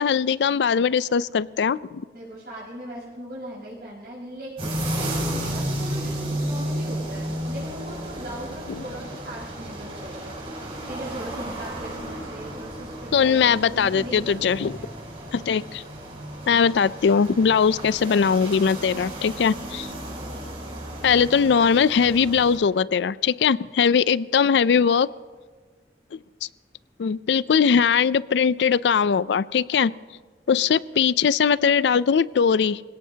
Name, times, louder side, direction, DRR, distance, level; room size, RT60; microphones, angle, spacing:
voice 1, 0.0-2.0 13.1-14.7 15.3-15.8 16.5-19.9 21.0-25.1 26.4-26.5 27.0-29.9 30.5-32.8, left 6 dB, 85° left, 18 dB, 0.4 m, -20 dB
voice 2, 2.1-4.8 5.3-10.4 10.9-14.7, equal, 60° right, -8 dB, 5.4 m, -39 dB
sound 1, 4.6-22.6, right 1 dB, 35° right, 5.9 m, -33 dB
26.0 x 17.5 x 2.8 m, 1.5 s
head